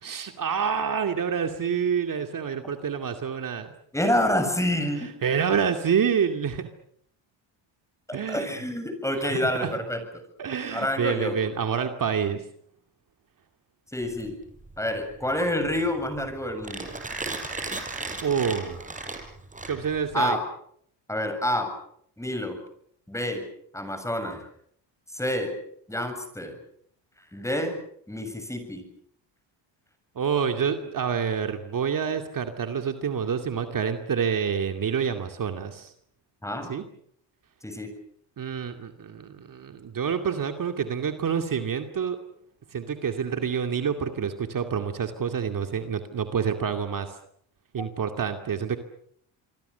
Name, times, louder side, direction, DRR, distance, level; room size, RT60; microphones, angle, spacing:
voice 1, 0.0-3.7 5.2-6.7 8.1-8.5 9.2-9.7 10.4-12.4 18.2-18.8 19.7-20.4 30.2-35.9 36.7-36.8 38.4-42.2 42.7-47.2 47.7-48.8, right 7 dB, 45° right, 6 dB, 2.5 m, -27 dB
voice 2, 3.9-5.1 8.1-10.0 10.7-11.4 13.9-14.3 14.8-16.9 20.1-20.4 21.1-21.7 22.2-22.6 23.1-23.5 23.7-24.4 25.1-25.5 25.9-26.6 27.3-27.8 28.1-28.9 36.4-36.7 37.6-37.9 47.8-47.9, left 1 dB, 5° left, 7 dB, 7.4 m, -28 dB
Mechanisms, 14.0-20.1, right 3 dB, 15° right, 5.3 m, -36 dB
27.5 x 23.0 x 6.9 m, 0.68 s
cardioid pair, 110°, 45 cm